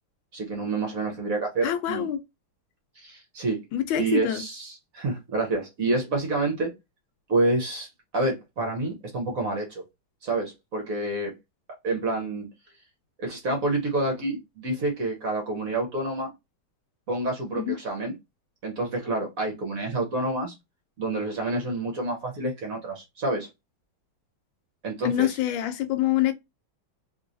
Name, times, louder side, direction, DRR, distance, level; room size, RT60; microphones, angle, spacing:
voice 1, 0.3-2.1 3.0-3.6 4.0-6.7 7.3-9.8 10.2-11.3 11.8-12.5 13.2-16.3 17.1-18.1 18.6-20.5 21.0-23.5 24.8-25.3, right 2 dB, 55° right, 1.1 m, -28 dB
voice 2, 1.6-2.2 3.7-4.4 17.6-17.7 25.0-26.3, left 12 dB, 80° left, 1.3 m, -25 dB
3.0 x 3.0 x 2.6 m
omnidirectional pair, 2.2 m